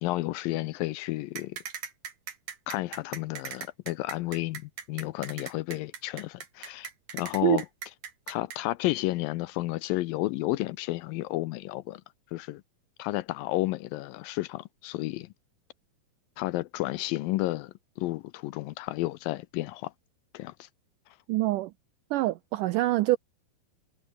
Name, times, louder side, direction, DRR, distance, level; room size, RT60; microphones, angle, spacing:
voice 1, 0.0-1.6 2.7-7.7 8.3-12.0 12.3-12.6 13.0-15.3 16.4-19.9 20.3-20.7, left 18 dB, 80° left, 2.2 m, -32 dB
sound 1, 1.4-8.6, right 7 dB, 55° right, 4.1 m, -39 dB
voice 2, 21.3-21.7 22.1-23.2, right 17 dB, 80° right, 1.9 m, -25 dB
omnidirectional pair, 4.4 m